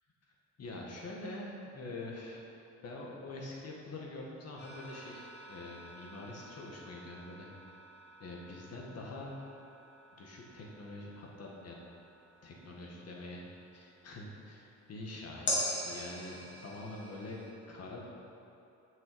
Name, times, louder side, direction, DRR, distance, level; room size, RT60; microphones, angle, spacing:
voice 1, 0.6-2.4 2.8-7.5 8.2-9.4 10.1-11.8 12.4-13.5 13.7-17.4 17.7-18.0, left 2 dB, 55° left, -2 dB, 2.0 m, -45 dB
sound 1, 4.6-14.0 15.5-17.5, left 1 dB, 40° left, 2.1 m, -43 dB
7.4 x 6.6 x 6.9 m, 2.8 s
cardioid pair, 90°, 30 cm